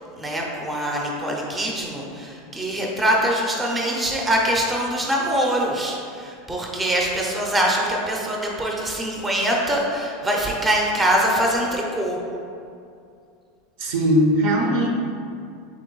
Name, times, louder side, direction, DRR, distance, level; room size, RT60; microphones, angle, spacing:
voice 1, 0.0-12.2, right 1 dB, 15° right, -1 dB, 0.6 m, -23 dB
voice 2, 13.8-14.9, equal, 70° right, 0 dB, 0.7 m, -19 dB
3.8 x 3.0 x 3.8 m, 2.4 s
supercardioid pair, 120°, 0 cm